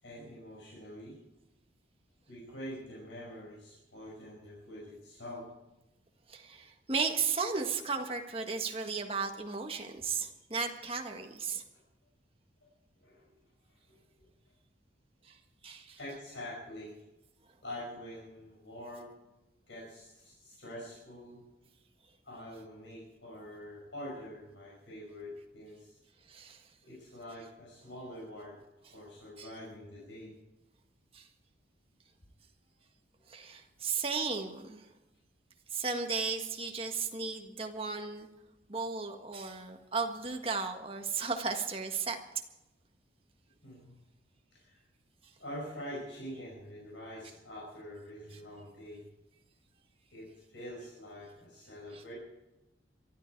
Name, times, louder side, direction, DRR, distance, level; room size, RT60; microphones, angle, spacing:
voice 1, 0.0-1.2 2.3-5.5 13.0-13.3 13.9-14.3 16.0-17.0 17.6-19.1 19.7-21.4 22.2-26.0 26.8-28.6 28.9-30.3 43.6-43.9 44.5-44.8 45.4-49.0 50.1-52.1, equal, 75° left, -5 dB, 5.6 m, -45 dB
voice 2, 6.3-11.6 15.2-15.4 15.6-16.0 26.3-26.6 29.4-29.5 31.1-31.3 33.3-34.9 35.7-38.3 38.7-42.2 51.9-52.0, right 4 dB, 30° right, 3 dB, 1.6 m, -35 dB
23.0 x 13.0 x 4.7 m, 0.99 s
head